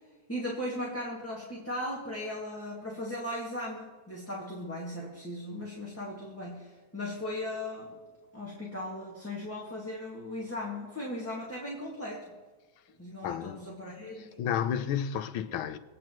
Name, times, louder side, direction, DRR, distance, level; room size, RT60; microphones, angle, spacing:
voice 1, 0.3-7.9 8.3-12.2 13.0-14.3, left 1 dB, 5° left, 1.6 m, -37 dB
voice 2, 13.2-13.6 14.2-15.8, left 8 dB, 85° left, 1.6 m, -31 dB
24.5 x 9.0 x 3.0 m
omnidirectional pair, 2.2 m